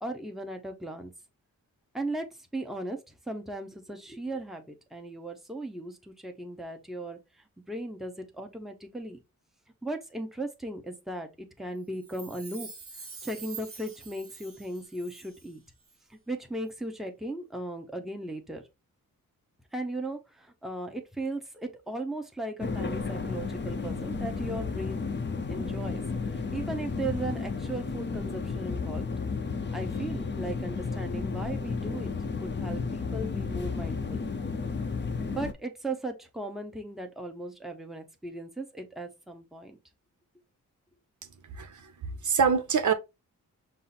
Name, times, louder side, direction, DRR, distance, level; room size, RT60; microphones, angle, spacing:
voice 1, 0.0-1.1 1.9-2.3 2.5-7.2 7.7-9.2 9.8-12.7 13.2-15.6 16.1-18.6 19.7-25.0 25.5-26.0 26.3-29.1 29.7-32.1 32.4-34.2 35.3-39.8, right 1 dB, ahead, 0.8 m, -37 dB
Chime, 11.9-15.6 15.8-15.9, right 5 dB, 40° right, 1.3 m, -46 dB
sound 1, 22.6-35.5, left 4 dB, 35° left, 0.6 m, -33 dB
voice 2, 41.5-41.9 42.2-42.9, right 6 dB, 60° right, 0.7 m, -25 dB
5.5 x 2.0 x 4.1 m
wide cardioid pair, 100°, 33 cm